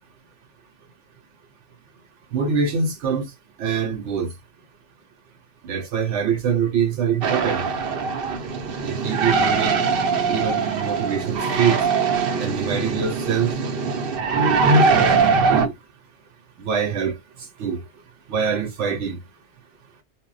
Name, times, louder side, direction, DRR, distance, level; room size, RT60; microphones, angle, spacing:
voice 1, 2.3-3.3 3.6-4.3 5.6-7.6 8.8-9.8 10.3-11.8 12.4-13.5 15.0-15.1 15.4-15.7 16.6-17.2 17.6-17.8 18.3-19.2, right 6 dB, 85° right, 0.9 m, -24 dB
sound 1, 7.2-15.7, right 4 dB, 60° right, 0.7 m, -21 dB
2.1 x 2.0 x 3.7 m
omnidirectional pair, 1.2 m